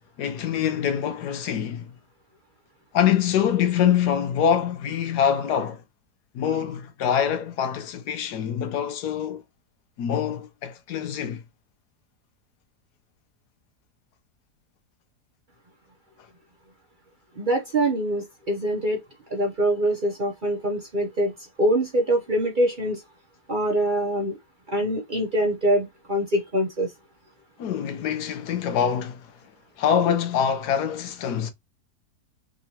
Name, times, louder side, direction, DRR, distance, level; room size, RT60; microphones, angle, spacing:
voice 1, 0.2-1.9 2.9-5.8 6.3-9.4 10.0-11.4 27.6-29.3 29.8-31.5, left 8 dB, 80° left, 1.3 m, -24 dB
voice 2, 17.4-19.0 19.3-21.3 21.6-23.0 23.5-24.3 24.7-26.9, right 1 dB, 45° right, 0.7 m, -24 dB
3.7 x 3.0 x 2.8 m
omnidirectional pair, 1.7 m